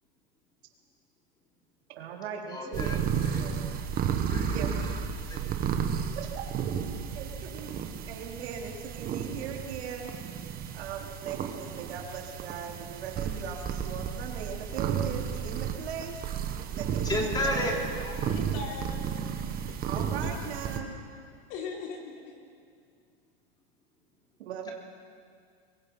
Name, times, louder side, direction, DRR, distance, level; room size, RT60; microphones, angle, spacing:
voice 1, 1.9-3.6 4.5-4.9 6.1-6.8 7.2-7.8 8.1-10.1 10.7-16.2 16.7-17.7 19.9-21.0 24.4-24.7, right 7 dB, 85° right, 0 dB, 3.9 m, -39 dB
voice 2, 2.5-3.4 4.3-4.6 5.3-5.6 17.0-17.8, left 1 dB, 15° left, 0 dB, 3.5 m, -32 dB
sound 1, 2.7-20.8, right 7 dB, 30° right, 1.6 m, -33 dB
voice 3, 17.9-19.0 19.3-20.3 21.5-22.3, left 5 dB, 50° left, -1 dB, 5.0 m, -41 dB
24.5 x 23.0 x 5.6 m, 2.3 s
supercardioid pair, 145°, 31 cm